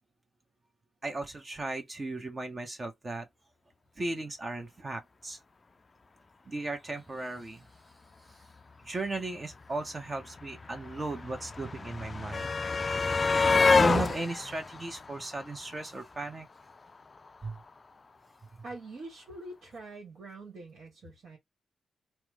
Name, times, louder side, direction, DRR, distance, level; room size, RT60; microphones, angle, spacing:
voice 1, 1.0-3.3 4.0-5.4 6.5-7.7 8.8-12.5 13.7-16.5 17.4-17.6, right 2 dB, 35° right, 0.9 m, -36 dB
sound 1, 9.5-9.6 9.8-16.0 17.2-17.3 17.6-17.7, left 4 dB, 40° left, 0.3 m, -28 dB
voice 2, 18.6-21.4, right 2 dB, 70° right, 1.3 m, -45 dB
2.9 x 2.1 x 3.6 m
supercardioid pair, 50°, 0 cm